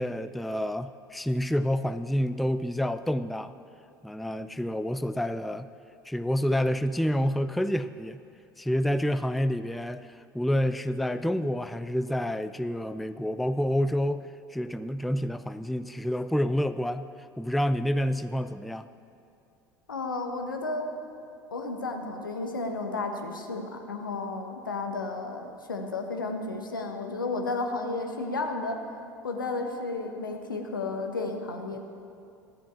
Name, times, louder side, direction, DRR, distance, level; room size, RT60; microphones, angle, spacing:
voice 1, 0.0-3.5 4.0-5.7 6.1-8.2 8.6-14.2 14.5-17.1 17.4-18.9, equal, ahead, 12 dB, 0.3 m, -28 dB
voice 2, 19.9-20.8 21.5-28.8 29.2-31.8, left 3 dB, 80° left, 4 dB, 1.1 m, -32 dB
13.0 x 7.5 x 7.2 m, 2.6 s
figure-of-eight pair, 70°, 11 cm